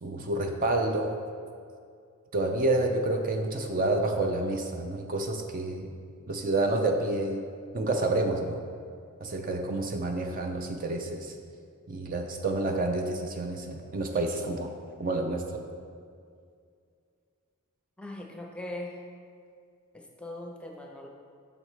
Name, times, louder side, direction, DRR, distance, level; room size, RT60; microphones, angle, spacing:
voice 1, 0.0-1.2 2.3-5.9 6.3-7.5 7.7-8.6 9.2-11.4 11.9-14.7 15.0-15.7, right 2 dB, 40° right, 4 dB, 0.5 m, -29 dB
voice 2, 18.0-19.0 19.9-21.1, left 1 dB, 5° left, 1 dB, 0.6 m, -40 dB
7.8 x 6.4 x 3.3 m, 2.3 s
head